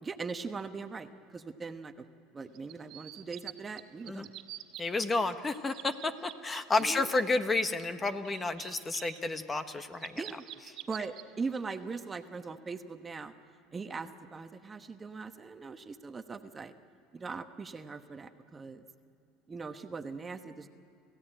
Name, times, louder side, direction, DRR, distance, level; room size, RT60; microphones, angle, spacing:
voice 1, 0.0-1.9 2.3-4.3 6.8-7.1 10.1-10.4 10.9-13.3 13.7-16.7 17.1-18.8 19.5-20.7, right 4 dB, 20° right, 8 dB, 1.1 m, -40 dB
sound 1, 2.5-3.5 3.8-5.1 5.3-6.8 7.3-11.2 11.7-12.0, right 15 dB, 60° right, 2.0 m, -47 dB
voice 2, 4.8-10.2, left 3 dB, 20° left, 10 dB, 1.2 m, -31 dB
28.0 x 16.0 x 9.0 m, 2.8 s
supercardioid pair, 105°, 0 cm